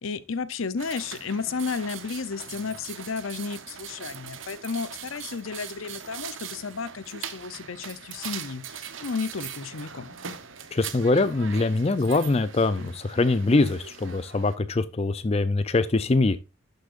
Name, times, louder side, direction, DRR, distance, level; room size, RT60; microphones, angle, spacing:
voice 1, 0.0-10.1, left 5 dB, 75° left, 0.7 m, -33 dB
sound 1, 0.8-14.6, right 8 dB, 65° right, 0.9 m, -41 dB
voice 2, 10.7-16.4, left 3 dB, 30° left, 0.4 m, -23 dB
11.5 x 6.5 x 2.5 m
head